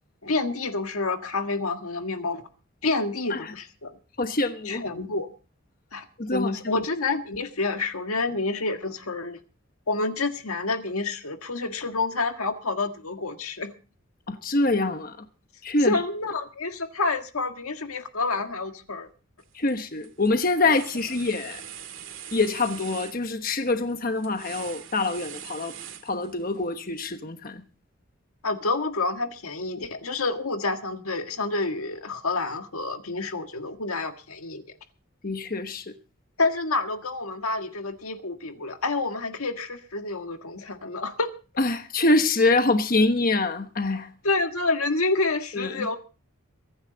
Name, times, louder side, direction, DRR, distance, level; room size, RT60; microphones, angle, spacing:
voice 1, 0.2-2.4 2.8-4.0 4.7-5.3 5.9-6.1 6.3-9.4 9.9-13.7 15.8-19.1 20.6-20.7 28.4-34.6 36.4-41.3 44.2-46.0, left 3 dB, 85° left, 1.7 m, -28 dB
voice 2, 4.2-4.8 6.2-6.5 14.3-15.2 15.6-15.9 19.5-21.6 22.3-25.8 26.0-27.6 35.2-35.8 41.6-44.1 45.5-45.8, left 2 dB, 40° left, 1.1 m, -25 dB
sound 1, 19.4-19.7 20.0-26.6, right 9 dB, 60° right, 2.1 m, -42 dB
23.5 x 10.0 x 3.9 m
head